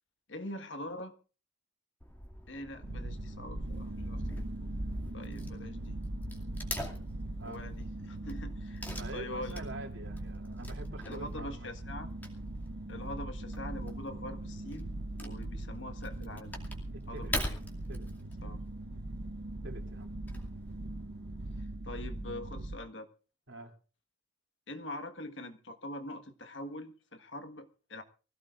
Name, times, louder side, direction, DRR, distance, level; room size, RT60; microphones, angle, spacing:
voice 1, 0.3-1.1 2.5-4.5 5.1-6.0 7.4-9.6 11.0-12.1 12.9-14.9 15.2-16.5 17.1-17.6 18.4-18.6 21.6-23.1 24.7-28.0, left 1 dB, 75° left, 1.6 m, -43 dB
Wood / Tearing, 2.0-21.6, left 1 dB, 10° left, 2.4 m, -45 dB
sound 1, 2.8-22.8, right 1 dB, 55° right, 0.8 m, -40 dB
voice 2, 8.9-11.7 16.9-17.3 17.9-18.3 19.6-20.1 23.5-23.7, right 2 dB, 75° right, 3.0 m, -46 dB
24.5 x 16.0 x 2.5 m
head